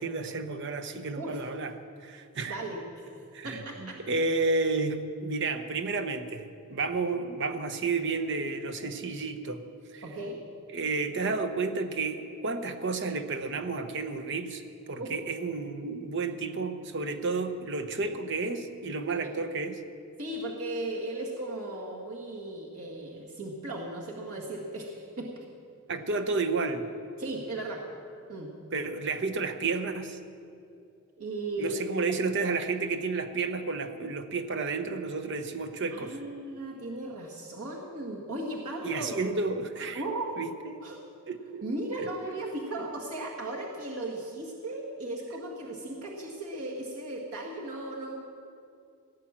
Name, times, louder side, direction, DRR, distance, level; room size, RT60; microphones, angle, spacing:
voice 1, 0.0-1.7 2.0-2.6 3.3-9.6 9.9-10.0 10.7-14.6 14.9-19.8 25.9-26.9 28.7-30.2 31.6-36.2 38.8-40.0 40.4-40.8 41.3-41.6 41.9-42.3, right 3 dB, 55° right, 8 dB, 1.0 m, -31 dB
voice 2, 2.5-3.1 3.4-4.0 10.0-10.4 15.0-15.1 19.2-19.3 20.2-25.3 27.2-27.8 28.3-28.5 31.2-31.8 35.9-39.2 39.9-40.4 40.8-41.0 41.6-48.2, right 2 dB, 85° right, -2 dB, 1.9 m, -36 dB
17.0 x 9.1 x 7.5 m, 2.5 s
head